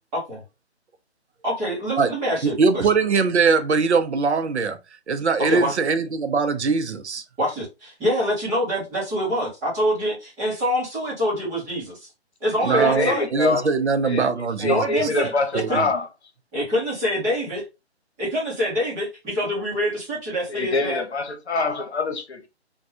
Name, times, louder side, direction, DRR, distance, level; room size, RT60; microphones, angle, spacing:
voice 1, 1.4-2.8 5.5-5.7 7.4-12.1 12.4-13.2 14.6-15.8 16.5-17.6 18.2-21.0, equal, 10° right, 0.8 m, -25 dB
voice 2, 2.4-4.8 5.1-7.2 12.6-15.1 15.5-15.9, right 4 dB, 80° right, 0.6 m, -22 dB
voice 3, 12.7-13.7 14.0-14.3 14.6-16.1 20.5-22.5, left 3 dB, 75° left, 1.0 m, -24 dB
3.5 x 2.3 x 2.7 m
figure-of-eight pair, 150°, 33 cm